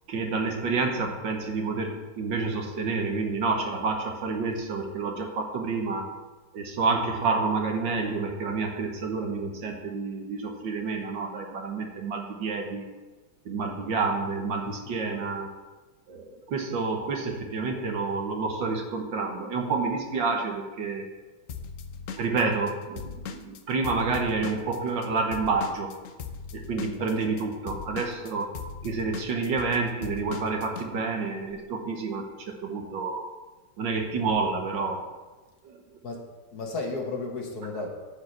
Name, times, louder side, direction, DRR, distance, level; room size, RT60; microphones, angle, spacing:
voice 1, 0.1-6.0 6.5-12.9 13.5-15.5 16.1-21.0 22.2-25.9 26.5-28.5 28.8-33.3 33.8-35.0 35.6-35.8, right 4 dB, 65° right, 3 dB, 1.8 m, -29 dB
Drum kit / Drum, 21.5-25.1 25.3-30.9, left 6 dB, 75° left, 0.7 m, -39 dB
voice 2, 36.5-37.9, left 3 dB, 50° left, 1 dB, 1.7 m, -33 dB
10.0 x 4.8 x 7.8 m, 1.2 s
omnidirectional pair, 2.2 m